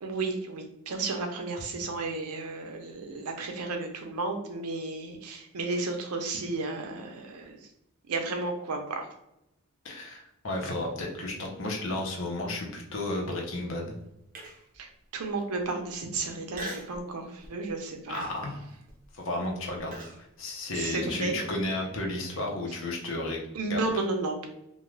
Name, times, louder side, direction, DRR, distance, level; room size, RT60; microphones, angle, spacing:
voice 1, 0.0-7.6 8.1-9.1 14.8-18.2 20.7-21.4 23.5-24.5, right 3 dB, 90° right, 4 dB, 0.6 m, -33 dB
voice 2, 9.8-14.0 18.1-18.7 19.1-20.0 20.4-23.4 23.7-23.8, left 2 dB, 60° left, 0 dB, 0.7 m, -33 dB
Human voice, 14.3-14.8 15.3-15.4 16.5-17.0 17.4-17.7 18.1-20.2, right 1 dB, 40° right, 0.5 m, -41 dB
2.5 x 2.3 x 3.1 m, 0.85 s
head